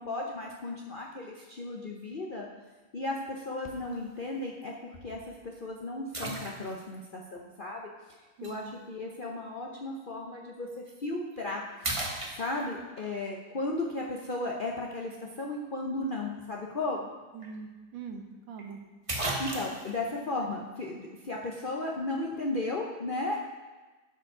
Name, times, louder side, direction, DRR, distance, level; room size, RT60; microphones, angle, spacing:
voice 1, 0.0-2.5 2.9-7.9 8.2-12.0 12.2-17.1 19.4-23.4, left 2 dB, 70° left, -1 dB, 0.4 m, -35 dB
sound 1, 3.6-4.0 4.6-4.7 6.1-7.0 8.4-8.6 10.7-10.9 11.3-11.5 11.8-12.9 17.0-17.1 17.4-17.5 18.6-18.7 19.1-19.9, right 2 dB, 20° right, 0.9 m, -35 dB
voice 2, 8.4-8.8 17.3-18.8, right 5 dB, 75° right, 4 dB, 1.8 m, -43 dB
11.0 x 5.1 x 6.1 m, 1.3 s
omnidirectional pair, 2.1 m